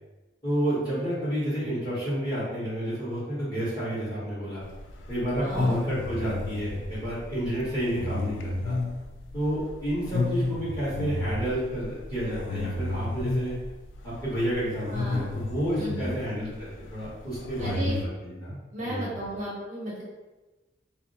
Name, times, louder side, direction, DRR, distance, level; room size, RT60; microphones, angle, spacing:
voice 1, 0.4-4.6 5.1-8.8 9.3-13.5 14.0-18.6 18.8-19.1, equal, 20° left, -11 dB, 1.4 m, -30 dB
sound 1, 4.6-18.1, left 2 dB, 80° left, 0.4 m, -33 dB
voice 2, 5.4-5.8 14.9-15.2 15.7-16.1 17.6-17.9 18.7-20.0, equal, 40° right, -6 dB, 0.8 m, -34 dB
2.6 x 2.1 x 4.0 m, 1.1 s
head